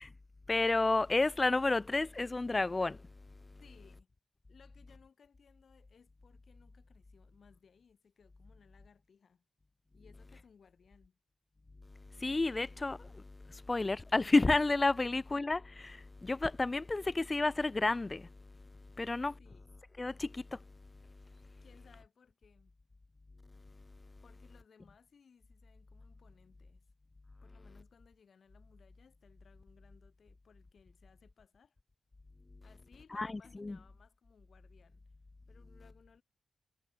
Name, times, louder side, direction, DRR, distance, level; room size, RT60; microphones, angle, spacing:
voice 1, 0.5-3.0 12.2-13.2 13.5-18.3 19.0-19.3 20.0-20.6 33.1-33.8, left 3 dB, 35° left, 1.2 m, -31 dB
voice 2, 3.6-4.1 4.5-9.4 9.9-11.2 14.9-15.1 19.0-19.1 19.4-19.8 21.6-22.8 24.2-26.9 27.4-31.8 32.6-35.0 35.5-36.2, left 6 dB, 70° left, 6.6 m, -64 dB
cardioid pair, 50°, 0 cm